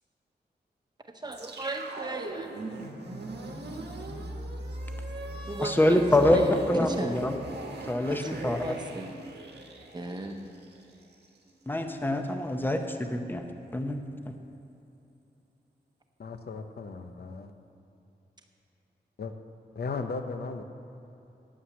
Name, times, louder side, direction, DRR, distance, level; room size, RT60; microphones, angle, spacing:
voice 1, 1.2-2.5 5.5-7.1 8.1-9.1 9.9-10.4, right 2 dB, 25° right, 4 dB, 1.0 m, -36 dB
sound 1, 1.3-11.5, right 2 dB, 80° right, 1.4 m, -39 dB
voice 2, 5.6-7.4 7.9-8.6 11.7-13.4 13.7-14.3, left 1 dB, 10° left, 5 dB, 0.8 m, -25 dB
voice 3, 16.2-17.5 19.2-19.4 19.7-20.6, left 4 dB, 65° left, 7 dB, 0.8 m, -36 dB
9.6 x 8.8 x 7.4 m, 2.9 s
wide cardioid pair, 120°, 17 cm